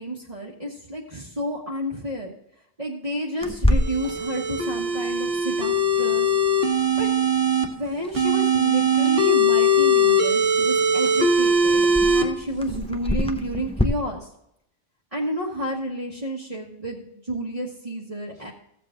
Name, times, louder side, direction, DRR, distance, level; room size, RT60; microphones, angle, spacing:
voice 1, 0.0-2.3 2.8-6.3 7.0-7.1 7.6-14.3 15.1-18.5, equal, 35° right, -3 dB, 1.4 m, -30 dB
Clock, 3.4-13.8, left 1 dB, 5° left, 0.6 m, -30 dB
sound 1, 3.7-7.6 8.1-12.2, equal, 65° right, 1.5 m, -20 dB
15.0 x 7.5 x 3.8 m, 0.77 s
omnidirectional pair, 1.1 m